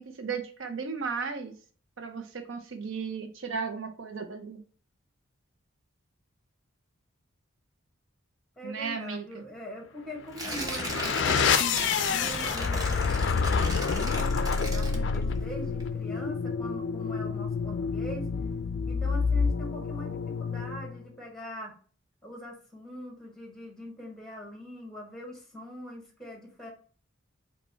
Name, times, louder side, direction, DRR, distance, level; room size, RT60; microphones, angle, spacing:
voice 1, 0.0-1.5 2.0-4.6 8.6-9.4, right 5 dB, 70° right, 7 dB, 0.6 m, -35 dB
voice 2, 8.6-11.3 11.7-18.3 18.9-21.8 22.2-26.7, equal, ahead, 0 dB, 1.3 m, -42 dB
sound 1, 10.3-21.0, left 5 dB, 55° left, 0.4 m, -28 dB
Tearing, 10.3-15.5 15.8-15.9, right 1 dB, 15° right, 0.8 m, -36 dB
5.2 x 2.2 x 4.3 m, 0.42 s
head